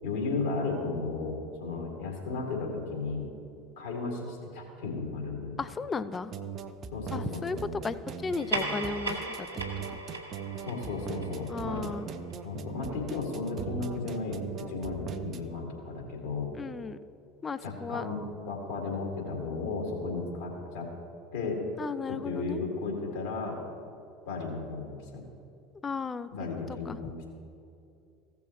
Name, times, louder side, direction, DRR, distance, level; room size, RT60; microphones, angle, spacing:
voice 1, 0.0-3.3 3.8-5.6 6.9-7.4 10.7-11.9 12.4-16.5 17.6-18.2 18.5-20.9 21.3-21.6 22.2-23.6 24.3-25.0 26.3-27.3, left 3 dB, 65° left, -1 dB, 2.3 m, -34 dB
voice 2, 5.6-6.3 7.1-8.0 8.2-9.5 11.5-12.1 16.5-17.0 17.4-18.1 21.8-22.6 25.8-26.5 26.9-27.0, left 4 dB, 25° left, 14 dB, 0.4 m, -35 dB
sound 1, 6.1-15.4, right 7 dB, 40° right, 0.6 m, -39 dB
sound 2, 8.2-13.1, right 2 dB, 85° right, 1.2 m, -38 dB
16.0 x 7.1 x 3.1 m, 2.6 s
figure-of-eight pair, 70°, 0 cm